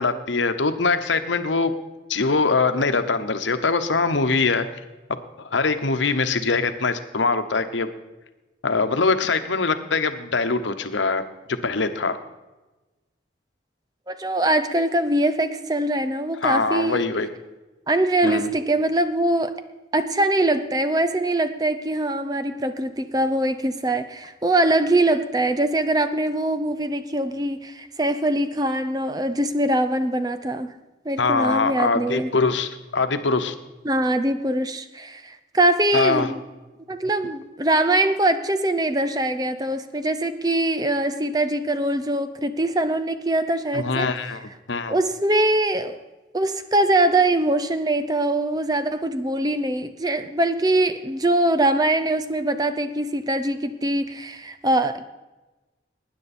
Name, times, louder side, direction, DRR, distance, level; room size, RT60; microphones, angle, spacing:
voice 1, 0.0-1.7 2.1-4.6 5.4-7.9 8.6-11.2 11.5-12.2 16.4-17.3 18.2-18.5 31.2-33.5 35.9-36.3 43.7-44.4 44.7-44.9, left 4 dB, 90° left, 9 dB, 1.0 m, -22 dB
voice 2, 14.1-17.0 17.9-19.5 19.9-30.7 31.0-32.3 33.8-36.4 36.9-44.1 44.9-46.0 46.3-55.0, right 1 dB, 20° right, 10 dB, 0.6 m, -22 dB
19.5 x 9.8 x 4.3 m, 1.1 s
head